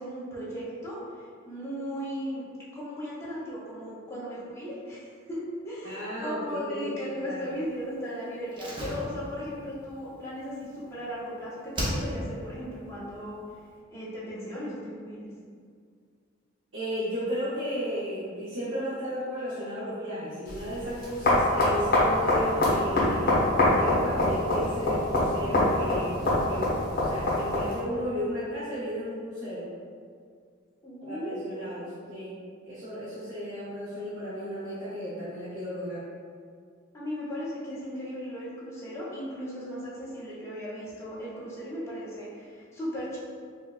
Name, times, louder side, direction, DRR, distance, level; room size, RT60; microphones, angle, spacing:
voice 1, 0.0-2.4 2.7-13.4 13.9-15.3 30.8-31.6 36.9-43.2, equal, 15° left, -8 dB, 0.7 m, -36 dB
voice 2, 5.8-7.5 16.7-29.7 31.0-32.4 32.6-36.0, equal, 85° right, -10 dB, 0.8 m, -34 dB
Slam, 8.5-11.3 11.7-12.5 12.7-12.8, equal, 25° right, 0.6 m, -35 dB
sound 1, 20.5-27.8, left 1 dB, 50° left, 0.9 m, -25 dB
4.4 x 2.2 x 2.4 m, 2.1 s
head